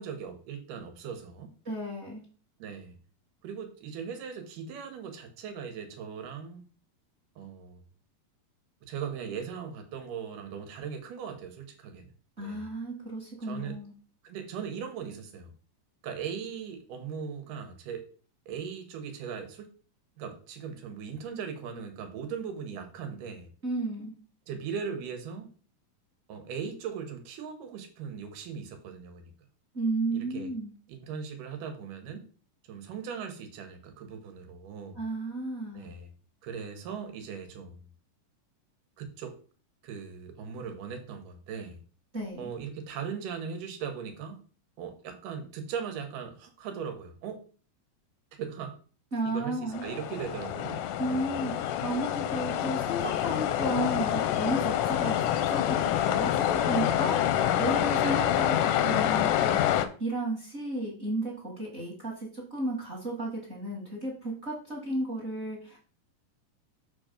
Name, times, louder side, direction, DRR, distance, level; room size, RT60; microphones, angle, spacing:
voice 1, 0.0-1.5 2.6-3.0 3.4-6.6 7.4-7.8 8.9-12.1 12.4-12.7 13.4-13.8 14.2-15.5 16.0-18.0 18.5-19.7 20.2-23.5 24.5-25.5 26.3-29.3 30.1-30.5 30.9-32.3 32.7-35.0 35.7-36.1 36.4-37.8 39.0-39.4 39.8-41.8 42.4-44.4 44.8-47.4 48.3-48.7 49.3-51.3 57.9-58.3, right 7 dB, 90° right, 6 dB, 2.7 m, -39 dB
voice 2, 1.6-2.2 12.4-13.9 23.6-24.1 29.7-30.7 34.9-35.9 42.1-42.5 49.1-49.8 51.0-65.9, right 2 dB, 30° right, -1 dB, 1.4 m, -33 dB
sound 1, 49.7-59.9, left 11 dB, 85° left, 2.2 m, -27 dB
6.9 x 3.8 x 5.2 m, 0.40 s
omnidirectional pair, 3.7 m